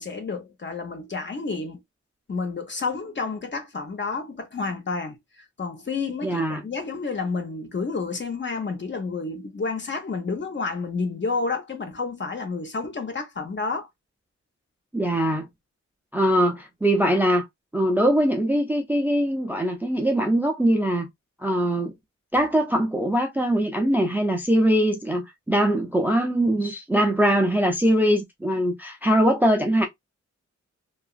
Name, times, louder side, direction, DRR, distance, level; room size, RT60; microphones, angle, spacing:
voice 1, 0.0-1.8 2.3-13.9, left 4 dB, 40° left, 0.8 m, -30 dB
voice 2, 6.2-6.6 14.9-15.5 16.1-17.4 17.7-21.1 21.4-21.9 22.3-29.9, right 1 dB, 5° right, 0.4 m, -22 dB
2.9 x 2.5 x 2.4 m
wide cardioid pair, 125°, 29 cm